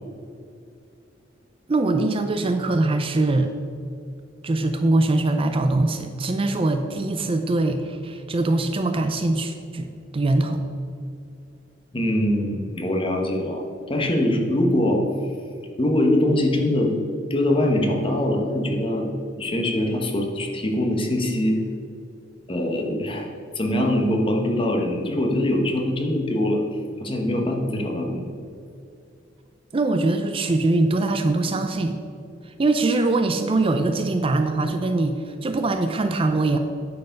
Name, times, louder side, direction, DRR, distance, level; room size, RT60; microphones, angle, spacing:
voice 1, 1.7-3.5 4.4-9.9 10.1-10.6 29.7-32.0 32.6-36.6, right 2 dB, 30° right, 7 dB, 0.4 m, -22 dB
voice 2, 11.9-15.0 15.8-16.9 17.3-19.1 19.4-21.6 22.5-23.3 23.5-26.6 27.0-28.3, left 1 dB, 30° left, 2 dB, 1.0 m, -23 dB
9.4 x 4.7 x 5.2 m, 2.4 s
head